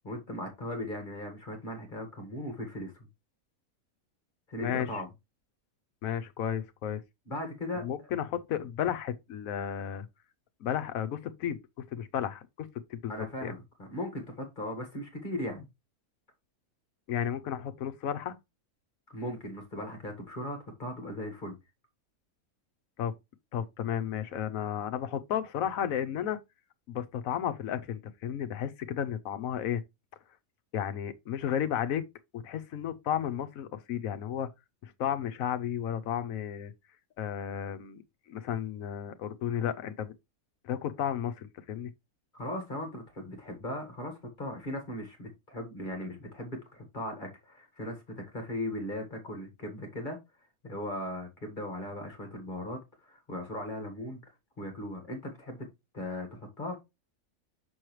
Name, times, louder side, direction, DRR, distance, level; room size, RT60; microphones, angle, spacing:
voice 1, 0.0-3.1 4.5-5.1 7.3-7.9 13.1-15.7 19.1-21.6 42.3-50.2 50.6-54.2 54.6-55.7 55.9-56.8, left 1 dB, 35° left, 1.7 m, -38 dB
voice 2, 4.6-5.0 6.0-7.0 7.8-10.1 10.6-11.6 11.9-13.5 17.1-18.4 23.0-23.1 23.5-26.4 26.9-29.8 30.7-32.0 32.3-34.5 34.8-36.7 37.2-38.0 38.3-40.1 40.6-41.9, left 9 dB, 75° left, 1.1 m, -33 dB
6.3 x 6.3 x 3.1 m
omnidirectional pair, 1.5 m